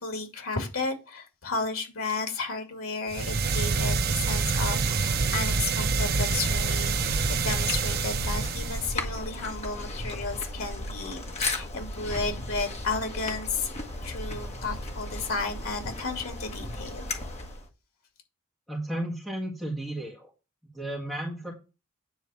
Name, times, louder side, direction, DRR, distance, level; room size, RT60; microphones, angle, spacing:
voice 1, 0.0-7.2 7.4-13.7 14.0-17.1, left 3 dB, 75° left, 2.5 m, -33 dB
sound 1, 3.1-9.0, right 4 dB, 45° right, 0.7 m, -26 dB
sound 2, 6.2-17.7, left 1 dB, 30° left, 1.5 m, -35 dB
voice 2, 18.7-20.3 20.7-21.5, right 1 dB, ahead, 2.2 m, -33 dB
9.7 x 4.0 x 7.3 m
head